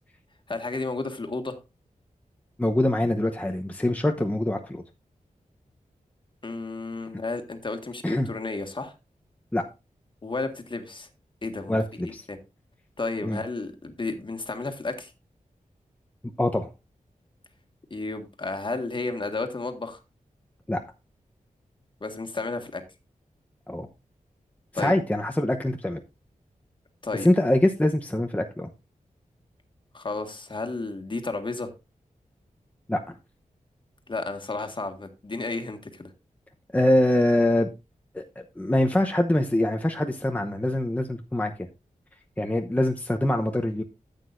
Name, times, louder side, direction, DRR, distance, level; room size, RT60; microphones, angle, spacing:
voice 1, 0.5-1.6 6.4-8.9 10.2-11.1 11.4-11.8 12.0-12.4 13.0-15.1 17.9-20.0 22.0-22.8 24.7-24.9 27.0-27.3 29.9-31.7 34.1-36.1, left 3 dB, 35° left, 6 dB, 1.7 m, -32 dB
voice 2, 2.6-4.8 8.0-8.3 9.5-9.7 11.7-12.2 13.2-13.4 16.4-16.7 20.7-20.8 23.7-23.9 24.7-26.0 27.2-28.7 32.9-33.0 36.7-37.7 38.1-38.2 38.6-41.5 42.4-43.8, left 1 dB, 10° left, 3 dB, 0.9 m, -24 dB
14.0 x 8.2 x 2.6 m, 0.26 s
wide cardioid pair, 115°, 14 cm